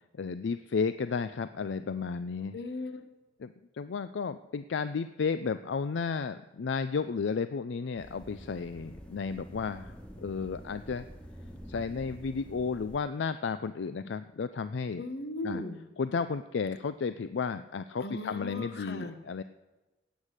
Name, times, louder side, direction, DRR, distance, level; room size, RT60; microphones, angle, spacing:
voice 1, 0.2-2.6 3.4-11.1 11.7-15.0 15.4-15.6 16.0-19.4, left 5 dB, 85° left, 12 dB, 0.4 m, -33 dB
voice 2, 2.5-3.0 15.0-15.8 18.0-19.2, left 2 dB, 65° left, 9 dB, 1.2 m, -37 dB
Stairs Int Amb of huge building reverberant doors lift, 8.0-13.0, equal, 5° left, 1.5 m, -47 dB
17.5 x 8.2 x 6.5 m, 1.1 s
head